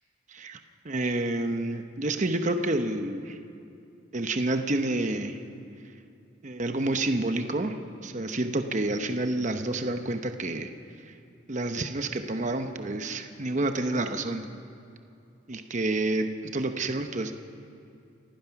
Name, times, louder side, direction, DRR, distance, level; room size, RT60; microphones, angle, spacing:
voice 1, 0.8-3.4 4.1-5.4 6.4-10.7 11.1-11.2 11.5-14.4 15.5-17.3, right 2 dB, 40° right, 7 dB, 0.9 m, -29 dB
28.0 x 16.0 x 5.9 m, 2.5 s
head